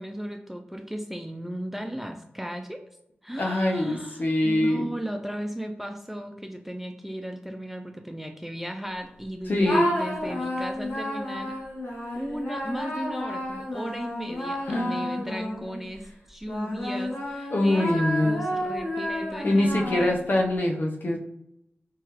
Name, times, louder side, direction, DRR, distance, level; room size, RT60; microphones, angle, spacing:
voice 1, 0.0-2.8 3.2-11.5 12.1-20.1, equal, 5° right, 5 dB, 0.3 m, -36 dB
voice 2, 3.4-4.9 9.5-9.9 14.7-15.3 17.5-18.5 19.4-21.2, left 1 dB, 50° left, 1 dB, 0.6 m, -24 dB
sound 1, 9.6-15.9 16.5-20.4, left 1 dB, 85° left, 1.1 m, -31 dB
4.5 x 2.4 x 3.0 m, 0.81 s
wide cardioid pair, 90°, 4 cm